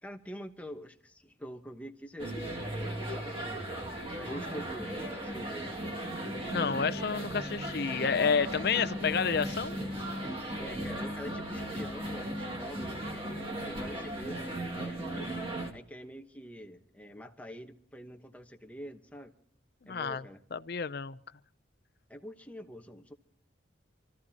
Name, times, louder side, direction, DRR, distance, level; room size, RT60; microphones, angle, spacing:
voice 1, 0.0-3.8 4.2-5.7 10.6-15.4 15.7-19.3 19.9-20.4 22.1-23.1, equal, 5° left, 1.0 m, -46 dB
sound 1, 2.2-15.7, right 1 dB, 30° right, 2.1 m, -37 dB
voice 2, 6.2-9.7 19.8-20.2 20.5-21.2, left 6 dB, 55° left, 0.5 m, -30 dB
27.5 x 14.5 x 2.9 m
head